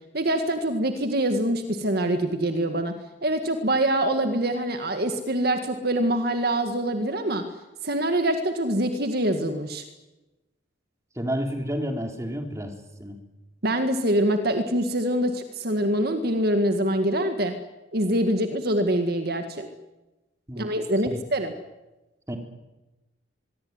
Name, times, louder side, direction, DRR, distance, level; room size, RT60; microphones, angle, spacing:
voice 1, 0.1-2.9 3.2-7.5 7.8-9.8 13.6-17.5 17.9-19.7 20.6-21.5, right 1 dB, 55° right, 7 dB, 2.0 m, -24 dB
voice 2, 11.1-12.7 13.0-13.2 20.5-20.7 21.1-21.2 22.3-22.4, equal, 15° right, 4 dB, 3.5 m, -30 dB
23.5 x 23.0 x 9.7 m, 1.1 s
head